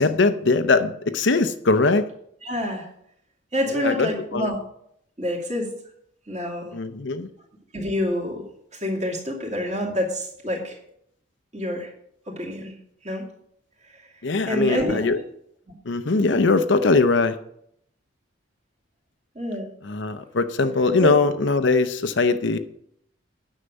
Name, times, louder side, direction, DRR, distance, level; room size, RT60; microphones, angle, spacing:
voice 1, 0.0-2.1 3.7-4.5 6.7-7.3 14.2-15.2 15.9-17.4 19.8-22.6, left 3 dB, 60° left, 10 dB, 0.6 m, -21 dB
voice 2, 2.4-2.9 3.5-4.6 5.2-5.7 6.3-6.7 7.7-8.4 8.7-10.8 11.5-11.9 12.3-12.7 13.0-13.3 14.5-15.2 15.7-15.8 19.3-19.7 21.0-21.1, left 1 dB, 35° right, -1 dB, 2.6 m, -27 dB
9.8 x 6.5 x 6.8 m, 0.72 s
head